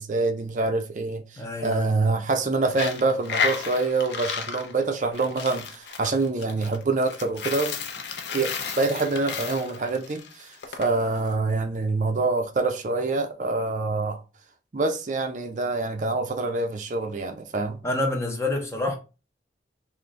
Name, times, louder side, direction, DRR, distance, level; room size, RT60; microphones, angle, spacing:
voice 1, 0.0-7.7 8.3-14.2 14.7-17.8, right 3 dB, 45° right, 0.5 m, -26 dB
voice 2, 1.4-1.9 17.8-18.9, left 2 dB, 15° left, 0.7 m, -27 dB
Coin (dropping), 2.7-10.9, left 6 dB, 75° left, 0.5 m, -32 dB
3.8 x 2.5 x 3.2 m
head